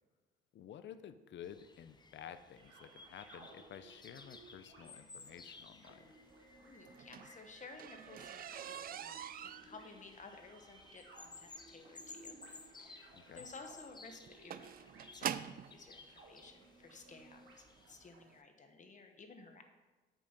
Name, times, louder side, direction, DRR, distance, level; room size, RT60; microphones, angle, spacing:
voice 1, 0.5-6.1 13.1-13.5, left 9 dB, 60° left, 12 dB, 0.6 m, -52 dB
sound 1, 1.4-18.1, left 3 dB, 20° left, 0.7 m, -58 dB
sound 2, 2.6-18.4, right 3 dB, 80° right, 1.9 m, -60 dB
voice 2, 6.6-12.4 12.8-19.6, left 4 dB, 35° left, 5 dB, 1.2 m, -55 dB
sound 3, 6.8-15.7 16.6-16.7 17.3-17.5 17.8-17.9 18.2-18.3, right 10 dB, 45° right, 0.4 m, -45 dB
8.5 x 6.2 x 5.3 m, 1.2 s
cardioid pair, 100°, 21 cm